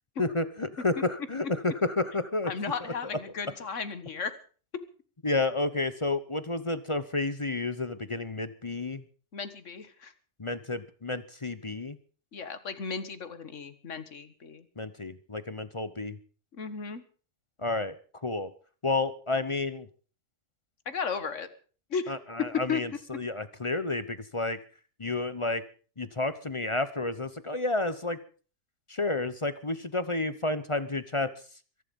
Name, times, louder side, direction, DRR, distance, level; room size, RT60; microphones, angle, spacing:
voice 1, 0.2-2.5 5.2-9.0 10.4-12.0 14.8-16.2 17.6-17.9 18.2-18.5 18.8-19.9 22.1-24.6 25.0-25.6 26.0-28.2 28.9-31.3, left 2 dB, 25° left, 13 dB, 0.8 m, -30 dB
voice 2, 2.5-4.3 9.3-10.1 12.3-14.6 16.6-17.0 20.9-21.5 21.9-22.2 22.7-22.8, left 5 dB, 55° left, 12 dB, 1.8 m, -35 dB
23.0 x 11.5 x 5.3 m, 0.41 s
omnidirectional pair, 1.6 m